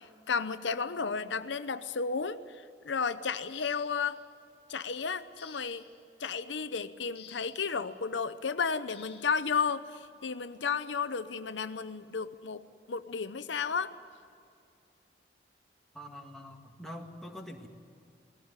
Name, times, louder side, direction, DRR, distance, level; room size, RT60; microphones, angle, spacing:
voice 1, 0.0-4.2 4.7-5.8 6.2-12.6 12.9-13.9, left 5 dB, 80° left, 11 dB, 0.8 m, -33 dB
sound 1, 3.4-4.3 5.4-6.0 7.1-7.7 8.9-9.4 10.6-10.7 11.2-11.4, left 9 dB, 60° left, 2.3 m, -53 dB
voice 2, 15.9-17.7, equal, ahead, 0 dB, 1.9 m, -44 dB
20.0 x 16.5 x 9.7 m, 2.4 s
head